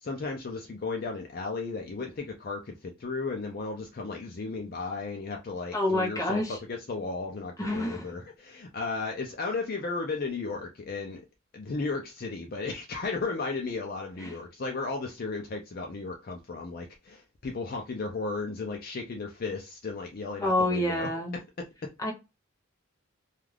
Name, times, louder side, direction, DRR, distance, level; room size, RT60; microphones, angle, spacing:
voice 1, 0.0-6.4 6.7-11.2 11.5-21.4, left 3 dB, 45° left, 0.4 m, -35 dB
voice 2, 5.7-6.6 7.6-8.1 14.2-14.4 20.4-21.4 22.0-22.1, left 1 dB, 15° left, 0.7 m, -28 dB
2.4 x 2.3 x 3.2 m
head